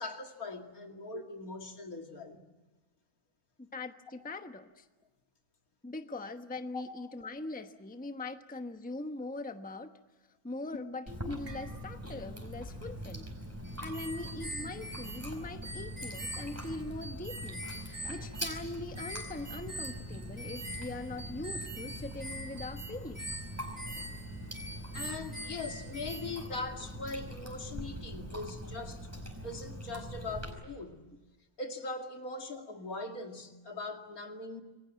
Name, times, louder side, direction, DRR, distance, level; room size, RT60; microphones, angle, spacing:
voice 1, 0.0-2.4 6.7-7.1 24.9-29.1 29.4-31.1 31.6-34.6, left 3 dB, 75° left, 2.8 m, -41 dB
voice 2, 3.6-4.9 5.8-9.9 10.4-13.3 13.8-23.5, left 2 dB, 5° left, 1.0 m, -41 dB
sound 1, 10.6-10.9 11.2-12.3 12.6-12.8 13.8-14.5, right 4 dB, 70° right, 2.0 m, -55 dB
Chewing mastication, 11.1-30.5, equal, 10° right, 4.7 m, -43 dB
sound 2, 13.6-26.6, right 1 dB, 25° right, 1.8 m, -44 dB
27.5 x 22.0 x 7.7 m
omnidirectional pair, 1.5 m